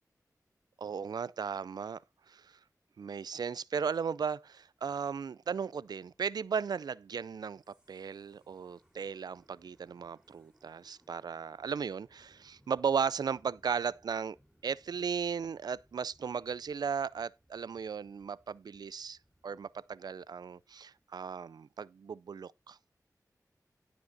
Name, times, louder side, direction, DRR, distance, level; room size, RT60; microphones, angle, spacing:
voice 1, 0.8-2.0 2.3-2.6 3.0-14.4 14.6-19.2 19.4-22.8, right 6 dB, 85° right, 0.4 m, -36 dB
sound 1, 4.5-21.0, equal, 10° right, 3.6 m, -70 dB
11.5 x 5.2 x 4.1 m
wide cardioid pair, 75°, 7 cm